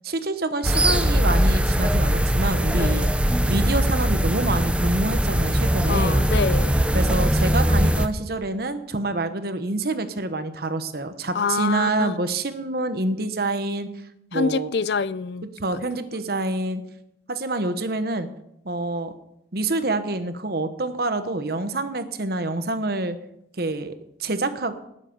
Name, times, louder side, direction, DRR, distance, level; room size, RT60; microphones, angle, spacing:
voice 1, 0.0-3.1 3.5-6.2 6.9-13.9 14.3-14.7 15.6-16.8 17.3-18.3 18.6-19.1 19.5-23.1 23.6-24.7, right 2 dB, 60° right, 1.1 m, -27 dB
sound 1, 0.6-8.1, equal, 5° right, 0.6 m, -21 dB
voice 2, 2.8-3.1 5.9-6.8 11.3-12.2 14.3-15.5, left 5 dB, 70° left, 0.5 m, -26 dB
19.0 x 7.5 x 5.4 m
head